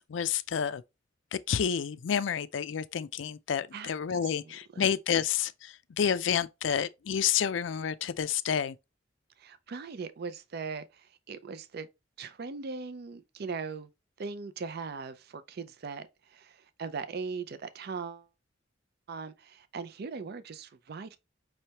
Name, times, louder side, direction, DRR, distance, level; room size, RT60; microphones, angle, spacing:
voice 1, 0.1-0.8 1.3-8.8, left 8 dB, 75° left, 0.4 m, -29 dB
voice 2, 4.4-4.9 9.4-11.9 12.2-13.9 14.2-18.3 19.1-21.2, right 5 dB, 55° right, 0.5 m, -39 dB
5.4 x 3.3 x 2.8 m
head